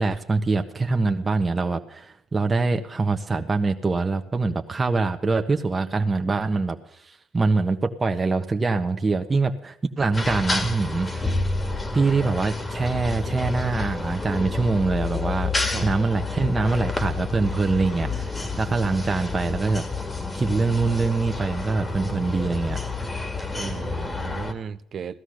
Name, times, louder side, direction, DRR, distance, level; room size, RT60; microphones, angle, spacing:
voice 1, 0.0-11.4 11.9-15.5 15.8-19.8 20.3-22.8, right 3 dB, 25° right, 1.3 m, -24 dB
sound 1, 10.1-24.5, left 3 dB, 20° left, 2.1 m, -29 dB
voice 2, 15.7-16.0 23.5-25.2, right 7 dB, 50° right, 0.8 m, -35 dB
16.5 x 13.0 x 6.5 m
supercardioid pair, 75°, 0 cm